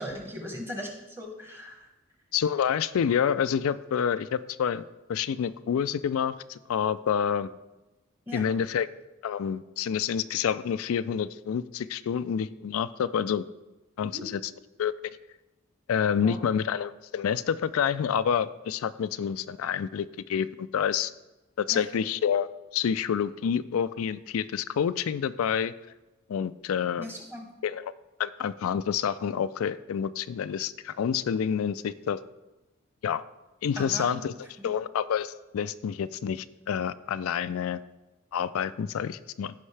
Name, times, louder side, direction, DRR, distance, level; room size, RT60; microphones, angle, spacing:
voice 1, 0.0-1.9 8.3-8.4 14.0-14.2 16.2-16.4 21.7-21.8 27.0-27.5 33.8-34.2, equal, 10° right, 2 dB, 1.3 m, -38 dB
voice 2, 2.3-4.8 5.1-7.5 8.3-8.9 9.2-13.4 14.0-14.4 14.8-14.9 15.9-21.1 21.6-22.5 22.7-25.7 26.3-27.1 27.6-27.9 28.2-32.2 33.0-33.2 33.6-34.3 34.6-37.8 38.3-39.5, left 8 dB, 80° left, 13 dB, 0.3 m, -28 dB
15.0 x 5.4 x 3.3 m, 1.0 s
head